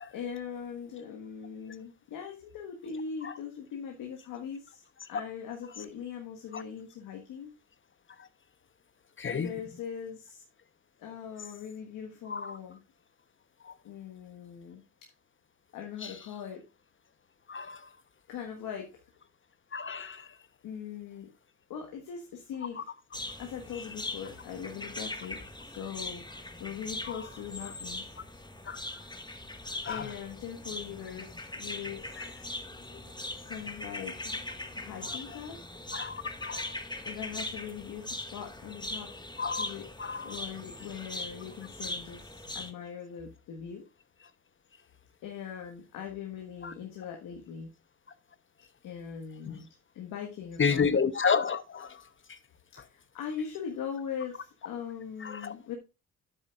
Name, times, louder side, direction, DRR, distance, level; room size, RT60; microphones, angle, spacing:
voice 1, 0.1-4.8 5.1-7.5 9.3-10.4 11.0-12.8 13.8-15.1 15.7-16.6 18.3-19.0 20.6-21.3 21.7-22.8 23.4-26.2 26.6-28.1 29.9-32.4 33.4-34.4 34.7-35.6 37.0-39.1 39.5-43.8 45.2-47.7 48.8-49.7 49.9-50.9 52.7-55.8, left 7 dB, 80° left, 1.6 m, -41 dB
voice 2, 9.2-9.5 12.3-12.6 13.7-13.8 16.0-16.1 17.5-17.8 19.7-20.3 27.1-27.2 28.7-28.8 29.8-30.1 35.9-36.7 39.4-39.7 40.0-40.3 46.6-46.7 49.5-49.6 50.6-51.9 55.2-55.5, left 6 dB, 35° left, 1.0 m, -30 dB
sound 1, 23.1-42.7, left 2 dB, 15° left, 1.6 m, -41 dB
9.9 x 8.2 x 2.5 m
supercardioid pair, 60°, 33 cm